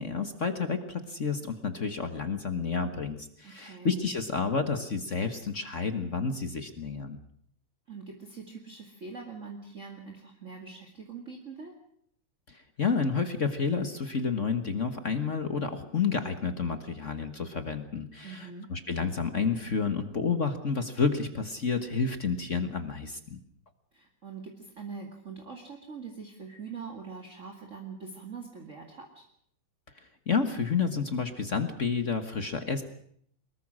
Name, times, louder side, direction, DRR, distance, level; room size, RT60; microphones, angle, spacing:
voice 1, 0.0-7.2 12.5-23.4 30.3-32.8, left 5 dB, 40° left, 8 dB, 1.5 m, -30 dB
voice 2, 3.4-3.9 7.9-11.7 18.2-18.7 23.9-29.2, right 5 dB, 35° right, 1 dB, 2.4 m, -43 dB
23.5 x 21.0 x 6.3 m, 0.64 s
omnidirectional pair, 2.4 m